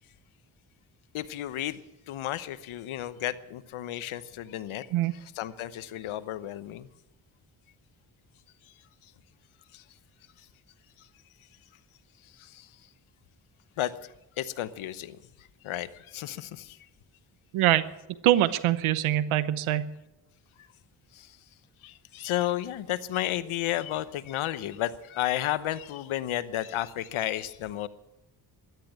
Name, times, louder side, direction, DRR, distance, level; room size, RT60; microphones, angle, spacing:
voice 1, 1.1-1.8 2.1-4.9 5.1-6.9 9.7-9.8 12.4-12.7 13.8-14.1 14.4-15.2 15.6-16.8 21.1-21.3 21.8-27.9, left 13 dB, 80° left, 14 dB, 1.0 m, -32 dB
voice 2, 17.5-17.8 18.2-19.9, right 13 dB, 90° right, 14 dB, 0.9 m, -23 dB
13.5 x 11.0 x 8.8 m, 0.91 s
supercardioid pair, 50°, 48 cm